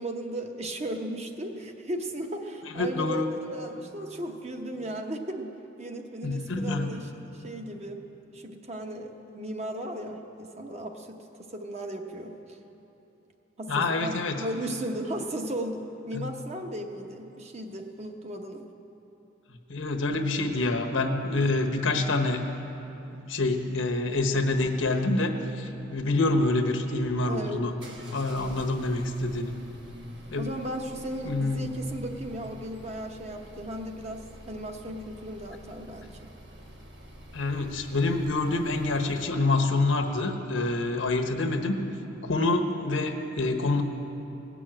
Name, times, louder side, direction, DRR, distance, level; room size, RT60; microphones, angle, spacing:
voice 1, 0.0-5.5 5.8-8.0 8.3-11.2 11.5-12.6 13.6-18.6 27.3-27.7 30.4-36.3, right 1 dB, 35° right, 4 dB, 0.9 m, -36 dB
voice 2, 2.8-3.3 6.2-6.9 13.7-14.4 16.1-16.2 19.5-22.4 23.3-27.7 28.1-29.5 30.3-30.5 31.2-31.7 37.3-41.8 42.2-43.8, left 2 dB, 80° left, 5 dB, 1.1 m, -27 dB
sound 1, 26.9-39.4, equal, 60° right, 1.3 m, -48 dB
18.0 x 6.2 x 8.9 m, 3.0 s
head